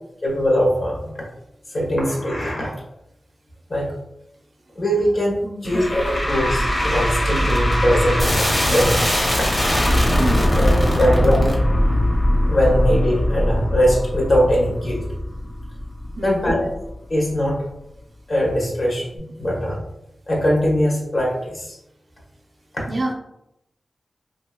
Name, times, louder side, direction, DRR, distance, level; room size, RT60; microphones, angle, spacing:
voice 1, 0.2-1.1 1.7-2.7 3.7-3.9 4.8-5.4 5.6-9.0 10.6-10.7 11.0-11.5 12.5-15.0 16.2-16.7 17.1-17.6 18.3-19.8 20.3-21.8, equal, 55° left, -3 dB, 1.0 m, -21 dB
voice 2, 5.4-5.9 10.2-10.7 11.0-11.3 16.2-16.6 22.9-23.1, right 1 dB, 50° right, 2 dB, 0.5 m, -28 dB
sound 1, 5.6-16.9, equal, 30° left, 0.7 m, -20 dB
2.8 x 2.7 x 2.2 m, 0.83 s
wide cardioid pair, 95°, 0 cm